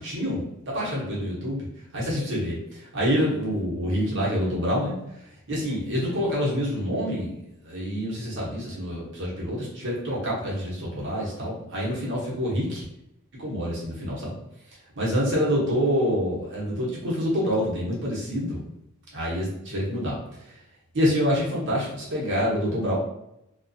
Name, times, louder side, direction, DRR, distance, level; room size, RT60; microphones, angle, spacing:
voice 1, 0.0-1.7 1.9-2.6 2.9-4.9 5.5-7.3 7.6-12.8 13.4-14.4 15.0-18.6 19.1-20.2 20.9-23.0, equal, 55° right, -6 dB, 0.9 m, -26 dB
2.3 x 2.3 x 2.6 m, 0.83 s
head